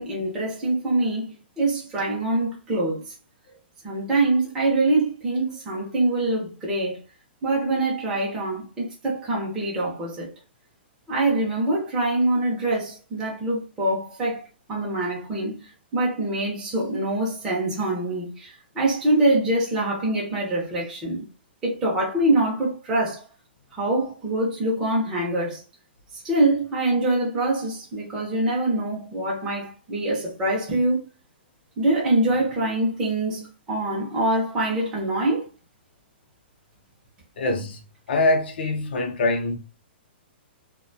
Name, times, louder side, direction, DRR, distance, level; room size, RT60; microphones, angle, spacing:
voice 1, 0.0-3.1 3.8-7.0 7.4-10.3 11.1-14.4 14.7-21.3 21.6-23.2 23.8-25.6 26.2-31.0 31.8-35.5, right 2 dB, 10° right, 0.6 m, -24 dB
voice 2, 37.4-37.8 38.1-39.6, left 2 dB, 65° left, 0.6 m, -23 dB
2.5 x 2.1 x 2.6 m
hypercardioid pair, 175°, 6 cm